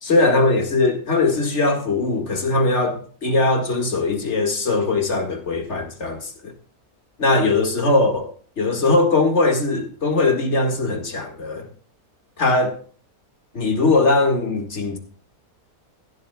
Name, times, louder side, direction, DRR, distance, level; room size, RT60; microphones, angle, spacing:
voice 1, 0.0-6.5 7.2-8.3 8.6-11.7 12.4-12.8 13.5-15.0, left 3 dB, 50° left, 2.1 m, -20 dB
16.0 x 11.5 x 2.3 m
omnidirectional pair, 1.6 m